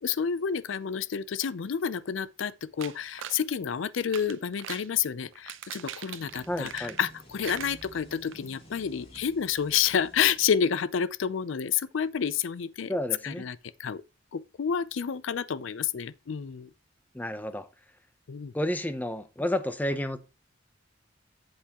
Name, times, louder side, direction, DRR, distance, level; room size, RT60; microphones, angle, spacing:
voice 1, 0.0-13.0 13.2-14.0 14.3-16.7 18.3-18.5, left 7 dB, 70° left, 0.5 m, -29 dB
sound 1, 2.8-3.4 4.0-4.9 5.3-7.2 7.4-8.4 8.7-8.8 9.1-9.2, right 10 dB, 80° right, 0.6 m, -41 dB
sound 2, 6.2-11.1, equal, 30° left, 3.1 m, -52 dB
voice 2, 6.5-7.0 12.9-13.5 17.1-17.7 18.5-20.2, left 1 dB, 10° left, 0.7 m, -31 dB
8.2 x 8.0 x 2.9 m
head